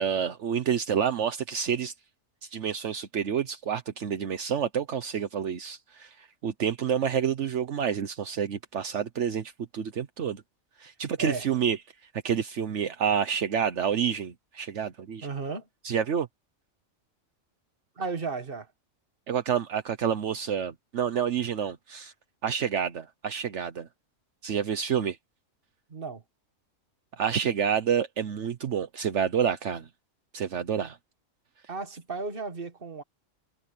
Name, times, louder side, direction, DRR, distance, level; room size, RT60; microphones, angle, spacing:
voice 1, 0.0-1.9 2.4-10.4 10.8-11.8 12.2-15.3 15.8-16.3 19.3-22.1 22.4-23.9 24.4-25.2 27.2-29.9 30.3-31.0, right 8 dB, 70° right, 1.3 m, -28 dB
voice 2, 15.2-15.7 18.0-18.7 25.9-26.2 31.7-33.0, right 4 dB, 45° right, 1.9 m, -34 dB
omnidirectional pair, 1.3 m